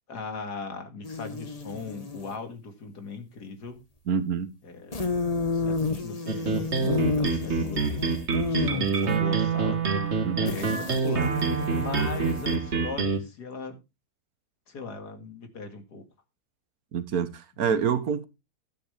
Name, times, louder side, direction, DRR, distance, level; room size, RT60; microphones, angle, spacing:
voice 1, 0.1-3.8 4.6-5.1 5.4-8.2 8.5-11.3 11.7-13.8 14.7-16.0, left 4 dB, 80° left, 2.6 m, -38 dB
sound 1, 1.0-2.4 4.9-9.2 10.5-12.7, left 3 dB, 25° left, 1.2 m, -31 dB
voice 2, 4.1-4.5 10.2-10.5 16.9-18.2, right 7 dB, 65° right, 1.5 m, -27 dB
sound 2, 6.3-13.2, right 5 dB, 45° right, 1.7 m, -26 dB
12.0 x 9.0 x 3.3 m
omnidirectional pair, 1.7 m